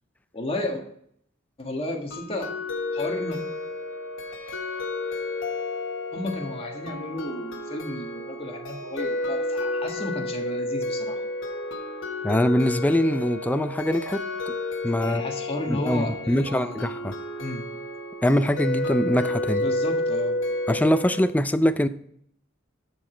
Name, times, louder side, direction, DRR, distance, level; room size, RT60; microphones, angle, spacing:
voice 1, 0.3-0.8 1.6-2.5 2.9-3.4 6.1-11.2 15.0-16.8 17.4-17.6 19.6-20.3, left 1 dB, 30° left, 1 dB, 1.6 m, -33 dB
sound 1, 2.1-21.3, left 2 dB, 70° left, 1.1 m, -31 dB
voice 2, 12.2-14.5 14.8-15.2 15.7-17.1 18.2-19.7 20.7-21.9, equal, 10° left, 11 dB, 0.4 m, -23 dB
13.0 x 4.9 x 4.4 m, 0.67 s
head